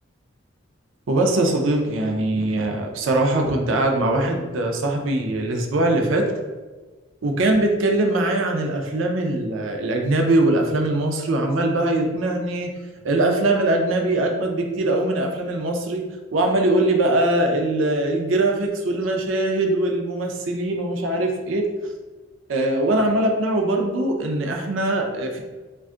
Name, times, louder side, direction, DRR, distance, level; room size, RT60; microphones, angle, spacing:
voice 1, 1.1-6.3 7.2-12.7 13.0-16.1 16.3-21.7 22.5-25.4, right 2 dB, 75° right, 2 dB, 0.5 m, -21 dB
2.5 x 2.3 x 3.6 m, 1.3 s
head